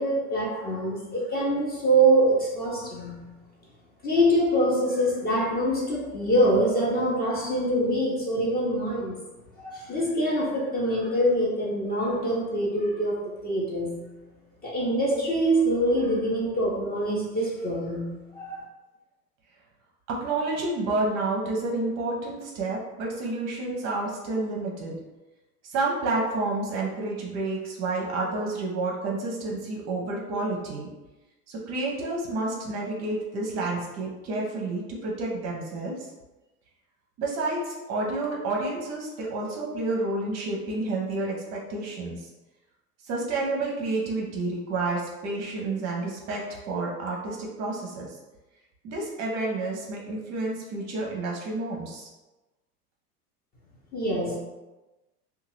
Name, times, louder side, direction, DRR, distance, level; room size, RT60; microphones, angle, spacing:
voice 1, 0.0-3.3 4.0-9.1 9.6-14.1 14.6-18.6 53.9-54.4, right 1 dB, 20° left, -4 dB, 0.7 m, -24 dB
voice 2, 20.1-25.0 25.6-30.9 31.5-36.1 37.2-42.3 43.0-48.2 48.8-52.1, right 2 dB, 35° right, -2 dB, 0.6 m, -30 dB
2.7 x 2.3 x 3.0 m, 1.1 s
figure-of-eight pair, 80°, 47 cm